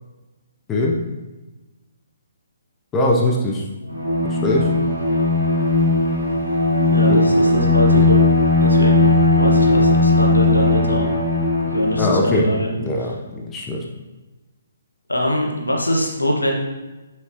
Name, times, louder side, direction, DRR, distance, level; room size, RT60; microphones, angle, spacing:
voice 1, 2.9-3.6 4.2-4.6 7.1-7.2 12.0-12.5 12.8-13.8, left 1 dB, 15° left, -1 dB, 0.7 m, -21 dB
Bowed string instrument, 3.9-12.4, left 2 dB, 85° right, 2.0 m, -17 dB
voice 2, 6.9-8.2 8.6-11.1 11.6-12.7 13.0-13.1 15.1-16.5, equal, 80° left, 0 dB, 1.4 m, -23 dB
7.7 x 6.1 x 2.9 m, 1.1 s
figure-of-eight pair, 130°, 0 cm